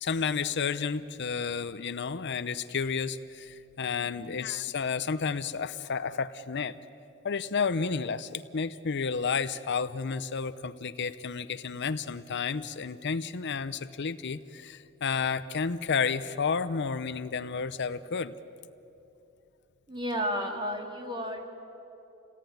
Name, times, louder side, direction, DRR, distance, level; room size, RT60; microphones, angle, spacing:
voice 1, 0.0-6.8 7.2-18.3 20.4-20.5, left 5 dB, 55° left, 12 dB, 0.6 m, -31 dB
voice 2, 4.0-4.3 19.9-21.4, equal, 20° right, 2 dB, 2.7 m, -33 dB
29.0 x 18.5 x 9.4 m, 2.9 s
head